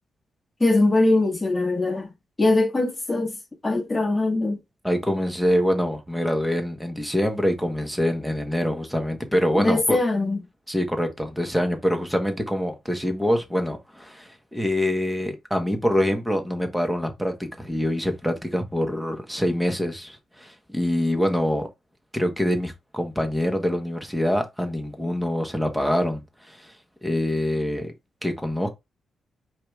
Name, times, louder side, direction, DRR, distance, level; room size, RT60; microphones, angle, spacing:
voice 1, 0.6-2.1 2.4-3.4 3.6-4.6 9.5-10.4, left 2 dB, 15° left, 1.6 m, -21 dB
voice 2, 4.8-10.0 10.7-21.7 22.1-26.7 27.0-27.9 28.2-28.7, equal, ahead, 1.1 m, -25 dB
4.8 x 4.6 x 2.4 m
cardioid pair, 110°, 0 cm